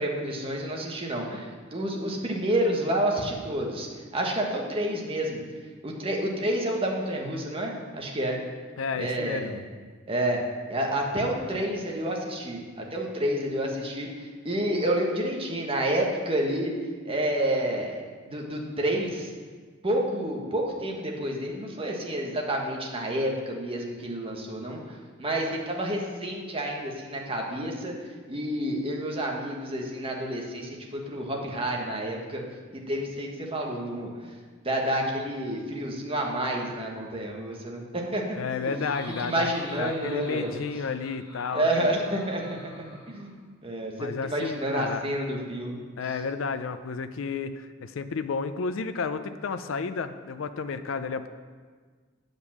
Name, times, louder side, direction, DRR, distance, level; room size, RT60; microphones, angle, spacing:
voice 1, 0.0-3.9 4.1-5.4 5.8-8.4 9.0-9.6 10.1-10.4 10.7-16.7 17.0-19.3 19.8-27.9 28.3-32.4 32.7-34.3 34.6-38.4 39.2-40.5 41.5-45.8, right 1 dB, 30° right, 0 dB, 1.3 m, -29 dB
voice 2, 8.8-9.6 38.4-41.9 44.0-45.1 46.0-51.3, left 5 dB, 80° left, 10 dB, 0.5 m, -32 dB
Laughter, 38.1-43.4, left 1 dB, 20° left, 3.0 m, -47 dB
8.1 x 5.3 x 7.2 m, 1.5 s
head